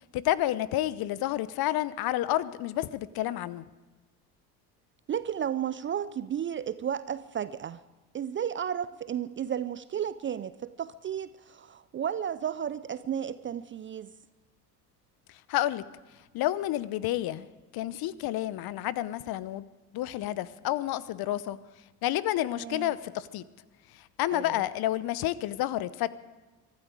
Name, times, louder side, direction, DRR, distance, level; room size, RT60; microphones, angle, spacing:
voice 1, 0.1-3.7 15.5-15.8 16.3-17.5 17.7-19.7 19.9-21.6 22.0-23.4 23.9-26.1, left 14 dB, 50° left, 18 dB, 0.8 m, -30 dB
voice 2, 5.1-7.8 8.1-14.1 22.6-22.9 24.3-24.6, right 9 dB, 25° right, 15 dB, 0.4 m, -33 dB
23.0 x 12.0 x 4.9 m, 1.2 s
hypercardioid pair, 60°, 48 cm